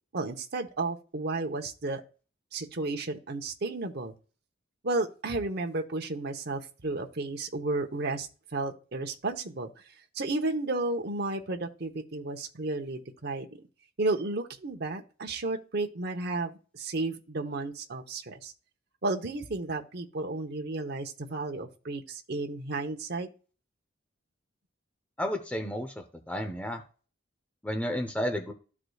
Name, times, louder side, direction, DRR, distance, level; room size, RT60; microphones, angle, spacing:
voice 1, 0.1-2.0 2.5-4.1 4.8-9.7 10.1-13.5 14.0-18.5 19.0-23.3, right 2 dB, 55° right, 3 dB, 1.0 m, -33 dB
voice 2, 25.2-26.8 27.6-28.5, equal, 5° left, 4 dB, 0.7 m, -32 dB
13.5 x 4.8 x 2.3 m, 0.37 s
head